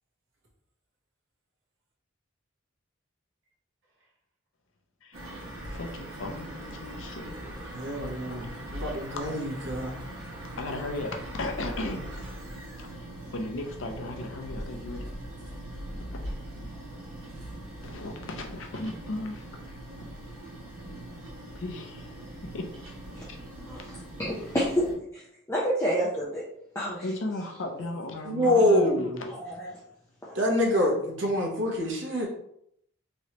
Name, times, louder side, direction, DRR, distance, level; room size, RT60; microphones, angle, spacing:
sound 1, 5.1-24.9, right 1 dB, 90° right, 1.2 m, -41 dB
voice 1, 5.7-7.4 8.3-8.4 10.6-12.1 12.8-13.1 13.3-15.1 16.0-16.1 17.8-19.8 21.5-22.1 22.5-22.6 27.0-29.3, left 2 dB, 75° left, 4 dB, 0.6 m, -36 dB
voice 2, 7.7-10.0 28.2-29.2 30.3-32.3, left 1 dB, 65° right, -1 dB, 0.9 m, -26 dB
voice 3, 23.7-24.8 25.1-25.2 25.5-26.4 26.7-27.0 29.3-29.7 30.2-30.4, equal, 15° left, -7 dB, 0.5 m, -29 dB
3.1 x 3.0 x 2.8 m, 0.72 s
head